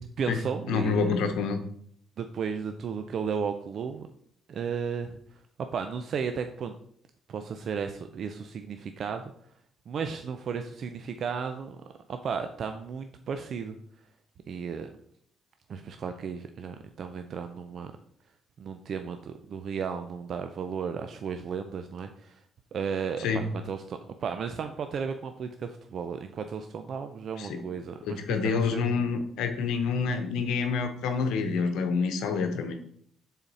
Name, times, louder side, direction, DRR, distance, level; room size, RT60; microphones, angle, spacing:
voice 1, 0.2-1.1 2.2-4.1 4.5-5.2 5.7-6.7 7.3-9.2 9.9-11.8 12.1-13.8 14.5-14.9 15.7-17.9 18.6-22.4 22.7-28.9, right 6 dB, 60° right, 7 dB, 0.5 m, -34 dB
voice 2, 0.7-1.6 23.2-23.4 27.4-27.6 28.1-32.7, left 5 dB, 90° left, 7 dB, 0.9 m, -27 dB
7.0 x 4.1 x 4.1 m, 0.65 s
cardioid pair, 90°, 0 cm